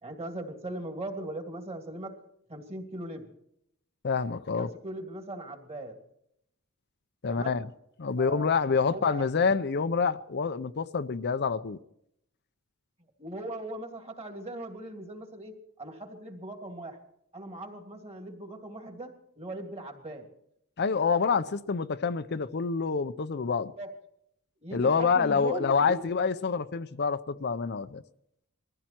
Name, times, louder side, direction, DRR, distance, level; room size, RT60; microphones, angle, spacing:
voice 1, 0.0-2.2 2.5-3.3 4.6-6.0 7.3-7.6 8.2-8.5 8.9-9.3 13.2-17.0 17.3-20.3 23.8-23.9 24.6-26.0, right 1 dB, 30° right, 3.0 m, -39 dB
voice 2, 4.0-4.7 7.2-7.7 8.0-11.8 20.8-23.7 24.7-28.0, left 5 dB, 50° left, 0.6 m, -27 dB
22.0 x 15.0 x 4.4 m
head